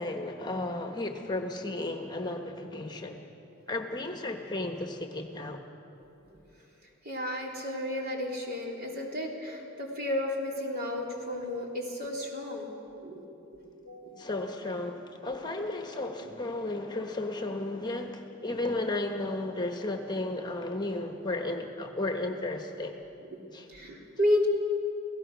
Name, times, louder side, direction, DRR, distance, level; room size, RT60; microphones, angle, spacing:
voice 1, 0.0-3.2 3.7-5.6 14.2-23.0 23.5-23.7, left 2 dB, 20° left, 4 dB, 1.3 m, -34 dB
voice 2, 7.0-12.7 13.0-13.2 13.5-14.2 16.2-16.3 23.2-23.3 23.7-24.5, left 1 dB, 50° right, -1 dB, 3.6 m, -32 dB
29.5 x 17.0 x 6.2 m, 2.9 s
head